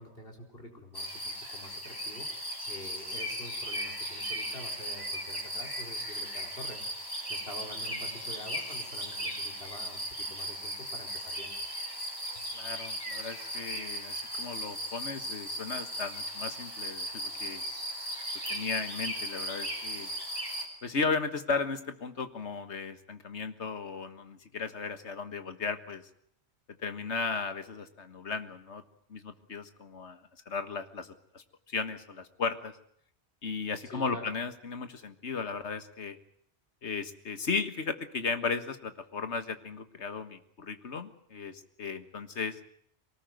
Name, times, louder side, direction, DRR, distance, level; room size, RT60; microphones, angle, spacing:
voice 1, 0.0-6.8 7.3-11.5 12.3-12.4 33.8-34.4, left 1 dB, 55° left, 2 dB, 4.6 m, -47 dB
sound 1, 0.9-20.7, equal, 20° left, 4.2 m, -37 dB
voice 2, 12.5-17.6 18.5-20.1 20.8-26.0 26.8-28.8 29.1-32.8 33.4-36.2 36.8-42.6, left 4 dB, 80° left, 10 dB, 1.8 m, -35 dB
23.5 x 19.0 x 9.3 m, 0.65 s
omnidirectional pair, 1.2 m